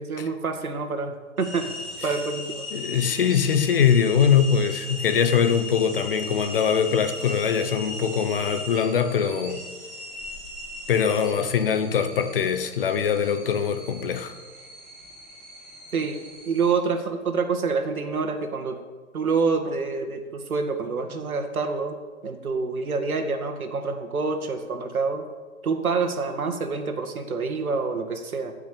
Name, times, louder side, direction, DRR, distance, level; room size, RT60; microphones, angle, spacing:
voice 1, 0.0-2.7 15.9-16.2 16.5-18.8 19.1-22.0 22.2-25.2 25.6-28.5, right 4 dB, 75° right, 5 dB, 2.0 m, -27 dB
sound 1, 1.4-16.7, left 1 dB, 5° left, 0.5 m, -38 dB
voice 2, 2.7-9.6 10.9-14.4, left 7 dB, 40° left, 9 dB, 0.9 m, -22 dB
14.0 x 6.1 x 8.6 m, 1.4 s
hypercardioid pair, 150°, 43 cm